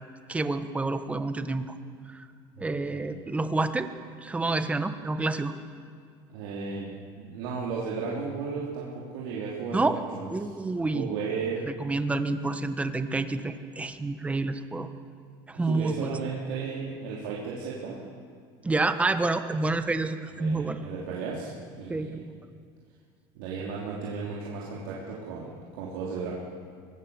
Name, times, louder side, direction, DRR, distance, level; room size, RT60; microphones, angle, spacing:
voice 1, 0.3-1.8 2.1-2.2 2.6-3.9 4.2-5.5 9.7-10.0 10.3-11.1 11.8-14.9 15.5-16.1 18.6-20.8 21.9-22.4, right 3 dB, 10° right, 10 dB, 1.1 m, -28 dB
voice 2, 2.6-3.0 6.3-10.3 10.9-11.6 15.5-18.0 20.4-22.2 23.4-26.3, right 5 dB, 80° right, -5 dB, 3.5 m, -35 dB
24.0 x 17.0 x 7.2 m, 2.1 s
cardioid pair, 130°, 11 cm